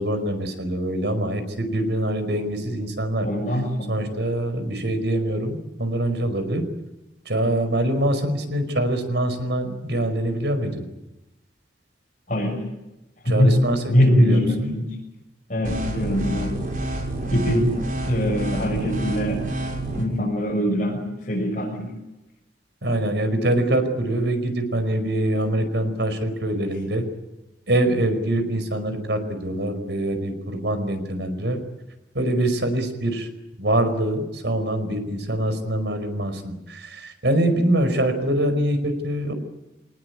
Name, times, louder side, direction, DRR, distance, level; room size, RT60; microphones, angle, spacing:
voice 1, 0.0-3.3 3.9-6.6 7.2-10.8 13.2-14.7 22.8-27.0 27.7-31.6 32.1-33.3 33.6-39.3, right 1 dB, 80° right, 9 dB, 5.1 m, -24 dB
voice 2, 3.2-4.0 12.3-12.6 13.2-13.6 13.9-14.8 15.5-16.5 17.3-17.7 18.0-19.4 20.0-21.9, equal, 45° left, -3 dB, 6.5 m, -22 dB
sound 1, 15.6-20.0, right 2 dB, 50° right, 5.9 m, -28 dB
26.0 x 19.5 x 8.7 m, 0.98 s
head